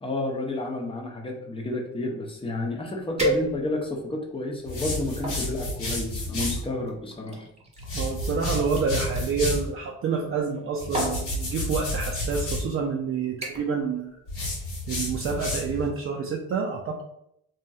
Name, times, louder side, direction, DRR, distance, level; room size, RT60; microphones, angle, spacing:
voice 1, 0.0-7.4, left 2 dB, 20° left, 0 dB, 0.7 m, -31 dB
sound 1, 3.2-3.9 4.6-5.4 6.4-9.3 10.4-10.6 10.9-11.2 12.1-12.3 12.7-13.0 13.4-13.8 14.1-14.5 14.9-15.0, right 1 dB, 20° right, 0.9 m, -32 dB
sound 2, 4.7-6.6 7.8-9.7 10.8-12.7 14.3-15.9, left 1 dB, 80° left, 1.4 m, -30 dB
voice 2, 7.9-14.1 14.9-17.0, right 5 dB, 45° right, 0 dB, 0.4 m, -28 dB
2.9 x 2.7 x 2.3 m, 0.76 s
cardioid pair, 90°, 30 cm